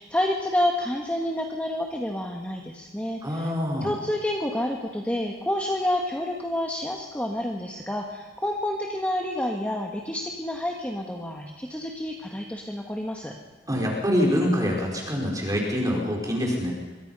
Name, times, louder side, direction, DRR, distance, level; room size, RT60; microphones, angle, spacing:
voice 1, 0.0-3.5 3.8-13.3, left 1 dB, 5° left, 0 dB, 1.8 m, -29 dB
voice 2, 3.2-3.9 13.7-16.7, equal, 20° right, -2 dB, 4.8 m, -25 dB
26.5 x 23.5 x 5.6 m, 1.3 s
head